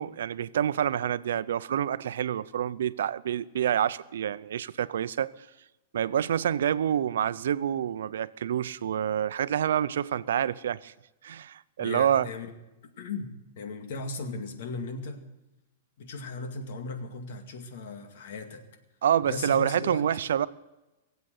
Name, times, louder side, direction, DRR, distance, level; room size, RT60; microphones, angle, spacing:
voice 1, 0.0-5.3 5.9-10.9 11.2-12.3 19.0-20.5, right 9 dB, 80° right, 0.6 m, -27 dB
voice 2, 11.8-12.5 13.0-15.2 16.0-18.7 19.2-20.1, left 3 dB, 60° left, 2.2 m, -37 dB
20.5 x 8.0 x 8.0 m
supercardioid pair, 160°, 0 cm